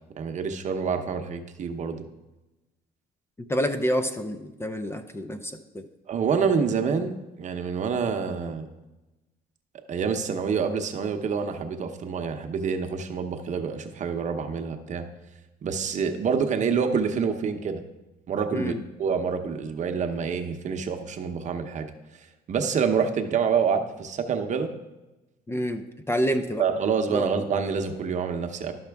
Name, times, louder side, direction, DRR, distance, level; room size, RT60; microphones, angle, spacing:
voice 1, 0.2-2.0 6.1-7.1 7.4-8.7 9.9-15.1 15.6-17.8 18.3-18.7 19.0-21.9 22.5-24.7 26.6-28.7, right 6 dB, 45° right, 6 dB, 0.8 m, -27 dB
voice 2, 3.4-5.8 18.5-18.8 25.5-26.6 27.1-27.3, equal, 15° left, 9 dB, 0.5 m, -28 dB
12.0 x 5.7 x 3.5 m, 1.0 s
cardioid pair, 110°, 17 cm